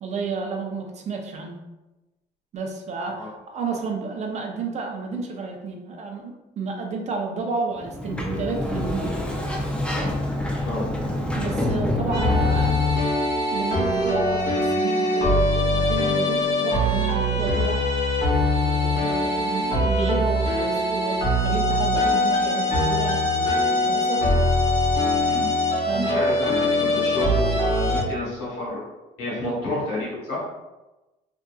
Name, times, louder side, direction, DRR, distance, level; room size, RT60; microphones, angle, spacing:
voice 1, 0.0-1.6 2.5-9.2 11.3-12.7 13.5-17.8 18.4-24.2 25.9-26.3, right 4 dB, 40° right, 2 dB, 0.5 m, -31 dB
Sliding door, 7.8-13.1, left 1 dB, 5° left, 0.3 m, -27 dB
voice 2, 10.5-11.1 25.2-25.5 25.9-28.8 29.2-30.4, left 2 dB, 90° left, -6 dB, 1.4 m, -30 dB
sound 1, 12.1-28.0, left 1 dB, 45° left, 1.0 m, -22 dB
2.6 x 2.5 x 2.3 m, 1.0 s
cardioid pair, 110°, 17 cm